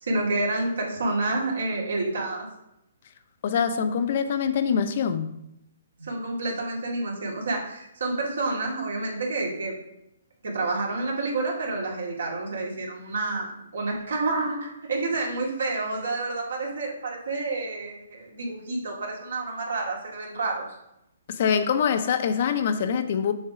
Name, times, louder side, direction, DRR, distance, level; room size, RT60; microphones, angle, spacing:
voice 1, 0.0-2.5 6.0-9.7 10.4-20.7, right 2 dB, 80° right, 2.1 m, -29 dB
voice 2, 3.4-5.4 21.3-23.3, left 7 dB, 50° left, 0.6 m, -24 dB
6.5 x 3.6 x 4.7 m
hypercardioid pair, 150°, 0 cm